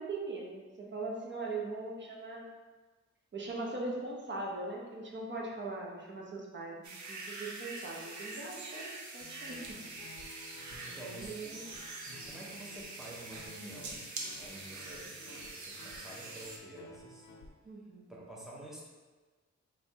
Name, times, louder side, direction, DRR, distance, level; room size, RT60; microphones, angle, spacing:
voice 1, 0.0-2.5 3.3-9.8 10.8-11.7 17.6-18.1, right 2 dB, 40° right, -2 dB, 0.8 m, -40 dB
sound 1, 6.8-16.6, right 3 dB, 75° right, 0.6 m, -45 dB
Guitar, 9.2-17.5, left 2 dB, 75° left, 0.6 m, -55 dB
voice 2, 10.7-11.5 12.0-14.1 14.4-17.3 18.1-18.9, right 1 dB, ahead, -4 dB, 0.6 m, -49 dB
4.5 x 2.7 x 3.4 m, 1.3 s
wide cardioid pair, 160°, 29 cm